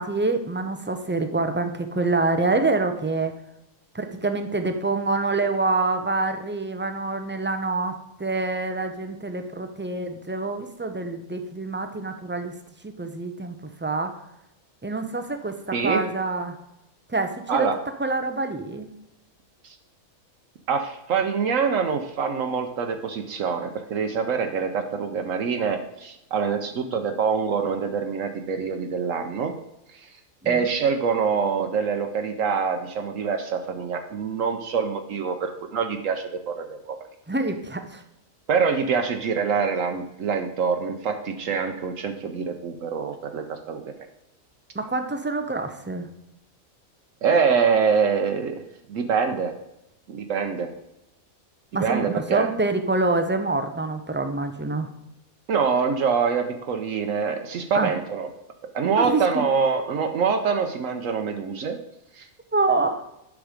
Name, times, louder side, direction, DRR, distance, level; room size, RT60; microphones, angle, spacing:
voice 1, 0.0-3.3 3.9-12.5 12.8-14.1 14.8-15.6 15.8-16.5 17.1-17.7 18.0-18.9 30.4-30.7 37.3-38.0 44.7-46.1 51.7-54.9 57.7-57.9 59.0-59.4 62.5-63.0, right 3 dB, 20° right, 7 dB, 0.3 m, -26 dB
voice 2, 15.7-16.0 17.5-17.8 19.6-19.8 20.7-29.5 30.0-30.1 30.4-37.0 38.5-43.8 47.2-48.6 48.9-49.5 50.1-50.7 51.7-52.5 55.5-58.3 58.7-61.8 62.1-62.3, right 6 dB, 70° right, 5 dB, 1.1 m, -25 dB
9.5 x 6.3 x 5.0 m, 0.86 s
omnidirectional pair, 1.4 m